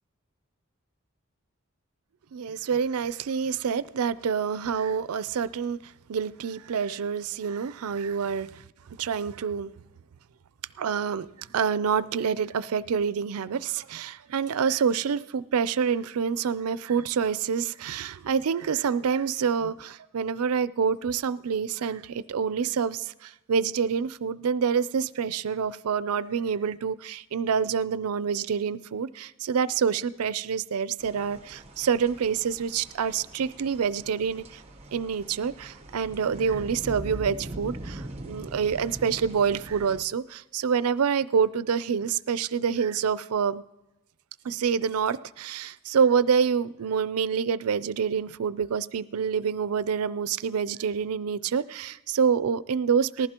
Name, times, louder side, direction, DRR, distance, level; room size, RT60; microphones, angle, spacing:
voice 1, 2.3-8.6 9.0-9.7 10.8-34.6 34.9-43.6 44.4-53.3, right 6 dB, 90° right, 0.4 m, -27 dB
sound 1, 31.0-40.0, right 1 dB, 30° right, 1.0 m, -42 dB
19.5 x 14.5 x 2.9 m
head